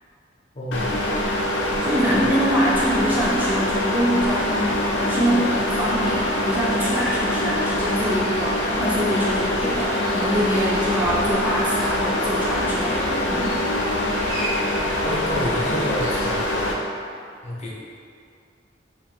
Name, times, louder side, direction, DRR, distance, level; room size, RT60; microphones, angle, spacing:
voice 1, 0.5-0.9 2.1-2.3 15.0-16.4 17.4-17.7, left 1 dB, 40° left, -5 dB, 0.6 m, -28 dB
sound 1, 0.7-16.7, left 1 dB, 80° left, 0.5 m, -24 dB
voice 2, 1.8-13.6, equal, 10° right, -7 dB, 0.4 m, -24 dB
sound 2, 7.8-16.3, right 1 dB, 75° right, 1.1 m, -39 dB
2.9 x 2.5 x 4.3 m, 2.3 s
head